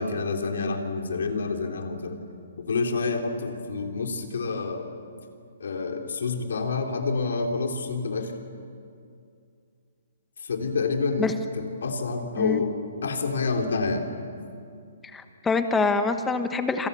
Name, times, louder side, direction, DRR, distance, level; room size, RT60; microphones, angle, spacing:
voice 1, 0.0-2.2 2.6-4.8 5.6-8.3 10.4-11.3 11.6-12.7 13.0-14.1, left 4 dB, 75° left, 3 dB, 3.7 m, -28 dB
voice 2, 15.1-16.9, left 4 dB, 5° left, 8 dB, 1.2 m, -25 dB
27.5 x 26.5 x 7.1 m, 2.4 s
hypercardioid pair, 170°, 0 cm